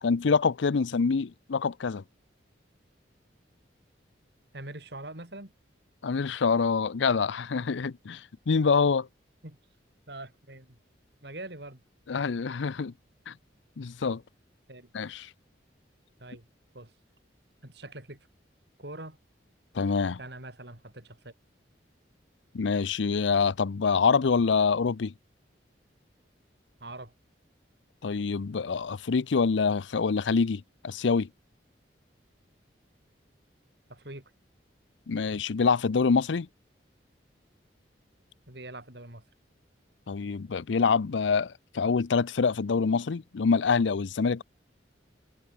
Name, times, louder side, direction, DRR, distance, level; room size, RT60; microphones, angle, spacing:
voice 1, 0.0-2.0 6.0-9.1 12.1-12.9 13.3-13.4 13.8-14.2 14.9-15.3 19.7-20.2 22.5-25.1 28.0-31.3 35.1-36.5 40.1-44.4, left 5 dB, 80° left, 0.5 m, -26 dB
voice 2, 4.5-5.5 9.4-9.6 10.1-10.8 11.2-11.8 14.7-14.9 16.2-16.5 16.7-16.9 17.6-18.2 18.8-19.2 20.2-21.3 26.8-27.1 33.9-34.3 38.5-39.2, right 2 dB, 65° right, 4.3 m, -43 dB
head